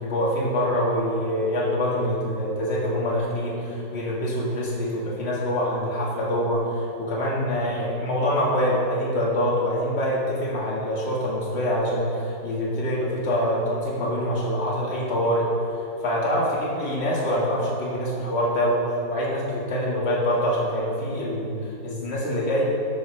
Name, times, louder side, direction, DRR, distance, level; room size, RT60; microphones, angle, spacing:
voice 1, 0.0-15.4 16.0-22.6, equal, 40° left, -5 dB, 2.1 m, -25 dB
14.5 x 9.1 x 3.3 m, 2.7 s
omnidirectional pair, 1.7 m